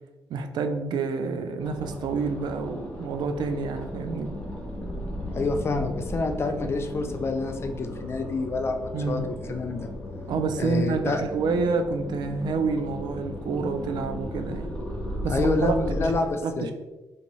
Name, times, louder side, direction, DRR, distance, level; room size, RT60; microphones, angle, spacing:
voice 1, 0.3-4.4 8.9-9.3 10.3-14.8 15.2-15.8 16.4-16.7, right 4 dB, 70° right, 7 dB, 0.4 m, -28 dB
sound 1, 1.6-16.2, equal, 15° left, 0.9 m, -35 dB
voice 2, 5.3-9.2 9.5-9.9 10.6-11.2 15.3-16.7, left 3 dB, 35° left, 6 dB, 0.4 m, -27 dB
3.4 x 2.8 x 3.0 m, 1.1 s
cardioid pair, 120°, 7 cm